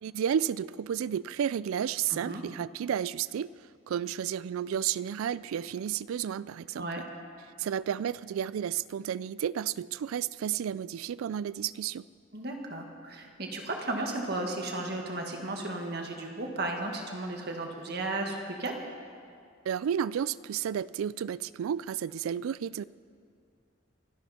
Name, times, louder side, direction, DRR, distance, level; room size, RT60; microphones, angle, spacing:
voice 1, 0.0-3.5 3.9-7.1 7.6-12.1 19.6-22.8, right 9 dB, 90° right, 19 dB, 0.3 m, -32 dB
voice 2, 2.1-2.4 6.8-7.0 12.3-18.8, right 2 dB, 50° right, 2 dB, 1.8 m, -34 dB
25.0 x 11.5 x 4.3 m, 2.3 s
head